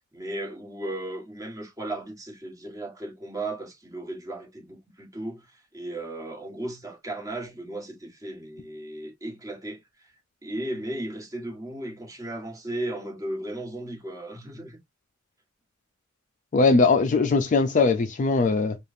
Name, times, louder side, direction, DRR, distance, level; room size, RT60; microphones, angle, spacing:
voice 1, 0.1-10.1 10.4-14.8, right 1 dB, 15° right, 1.5 m, -35 dB
voice 2, 16.5-18.8, left 4 dB, 35° left, 0.4 m, -20 dB
4.9 x 2.3 x 2.6 m
head